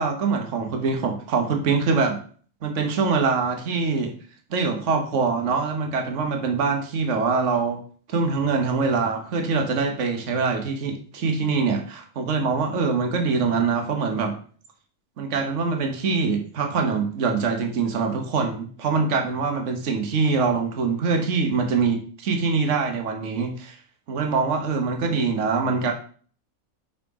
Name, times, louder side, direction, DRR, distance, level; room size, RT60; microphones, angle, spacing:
voice 1, 0.0-2.2 2.6-4.1 4.5-7.8 8.1-14.4 15.2-23.8 24.1-25.9, right 4 dB, 55° right, 4 dB, 1.4 m, -24 dB
5.5 x 5.1 x 4.8 m, 0.44 s
omnidirectional pair, 1.5 m